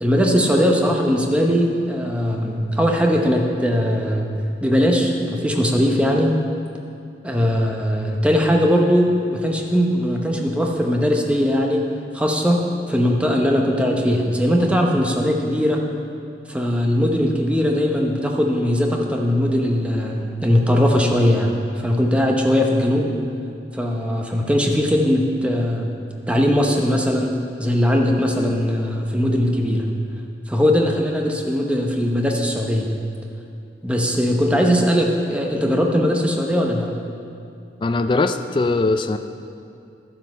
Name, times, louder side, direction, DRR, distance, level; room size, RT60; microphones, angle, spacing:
voice 1, 0.0-4.3 4.6-6.3 7.2-11.8 12.1-12.6 12.9-15.8 16.5-23.1 23.7-25.9 26.3-27.3 27.6-29.8 30.5-32.9 33.8-36.9, equal, 5° right, 1 dB, 0.8 m, -19 dB
voice 2, 37.8-39.2, left 3 dB, 25° left, 8 dB, 0.3 m, -20 dB
11.5 x 7.6 x 5.3 m, 2.5 s
head